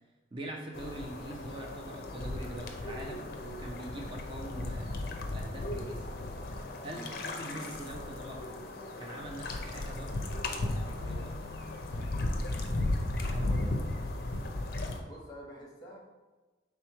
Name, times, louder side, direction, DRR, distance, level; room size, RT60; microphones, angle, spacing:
voice 1, 0.3-4.9 5.3-6.1 6.8-8.6 9.0-11.3 13.3-13.5, right 1 dB, 25° right, 0 dB, 0.5 m, -43 dB
sound 1, 0.7-15.0, left 2 dB, 50° left, 0.5 m, -35 dB
voice 2, 12.5-13.0 13.4-13.8 15.1-16.0, equal, 20° left, -2 dB, 0.9 m, -49 dB
3.5 x 3.0 x 4.6 m, 1.3 s
head